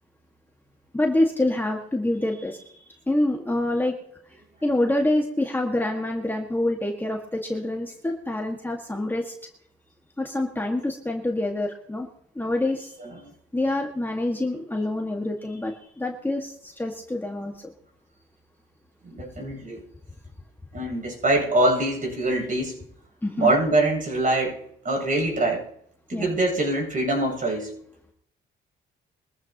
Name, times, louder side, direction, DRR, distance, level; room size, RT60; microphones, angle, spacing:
voice 1, 0.9-2.7 3.1-3.9 4.6-9.3 10.2-12.1 12.4-12.9 13.5-17.7 23.2-23.5 26.1-26.3, left 1 dB, 10° left, 1 dB, 1.8 m, -26 dB
voice 2, 13.0-13.3 19.0-19.8 20.7-22.8 23.4-25.7 26.1-27.7, right 2 dB, 45° right, 1 dB, 8.0 m, -24 dB
23.0 x 14.5 x 3.0 m, 0.70 s
cardioid pair, 90°, 20 cm